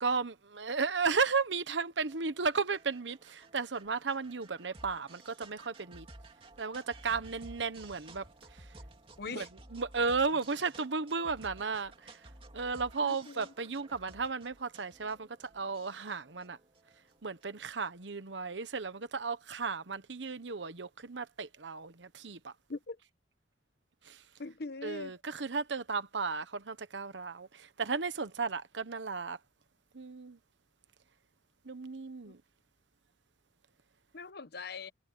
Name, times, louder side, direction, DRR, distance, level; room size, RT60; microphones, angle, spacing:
voice 1, 0.0-6.1 6.6-8.3 9.3-9.4 9.7-12.2 12.5-16.6 17.2-22.5 24.0-24.2 24.8-29.4 29.9-30.4 31.6-32.4, right 4 dB, 85° right, 1.1 m, -34 dB
sound 1, 2.1-17.6, right 2 dB, 30° right, 2.7 m, -55 dB
voice 2, 9.2-9.5 13.0-13.5 22.7-23.0 24.4-25.1 32.2-32.3 34.1-34.9, left 4 dB, 60° left, 1.0 m, -42 dB
head